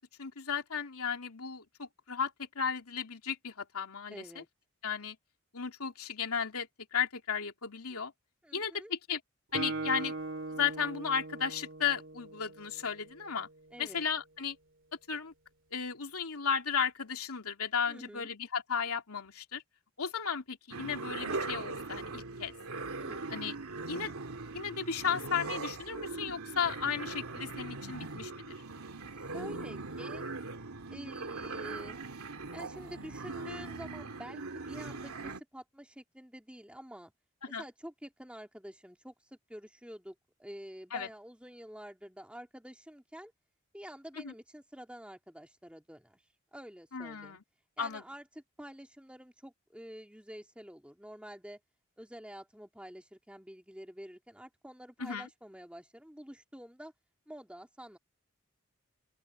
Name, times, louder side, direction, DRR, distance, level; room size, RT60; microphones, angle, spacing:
voice 1, 0.2-4.4 4.8-5.2 5.5-8.1 8.5-9.2 9.5-10.1 10.5-13.5 13.8-14.6 15.1-15.3 15.7-19.6 20.0-22.5 23.3-23.5 23.9-24.1 24.5-28.5 37.4-37.6 40.9-41.1 44.2-44.3 46.9-47.4 47.8-48.0 55.0-55.3, left 7 dB, 85° left, 2.8 m, -34 dB
voice 2, 4.1-4.5 8.4-8.9 13.7-14.0 17.9-18.3 23.0-23.2 29.2-30.3 30.9-32.0 32.5-37.1 37.6-43.3 43.7-46.2 46.5-47.4 47.8-51.6 52.0-56.9 57.3-58.0, equal, 5° right, 2.8 m, -48 dB
Guitar, 9.5-13.2, right 3 dB, 55° right, 3.0 m, -40 dB
sound 1, 20.7-35.4, right 3 dB, 85° right, 2.6 m, -40 dB
open air
head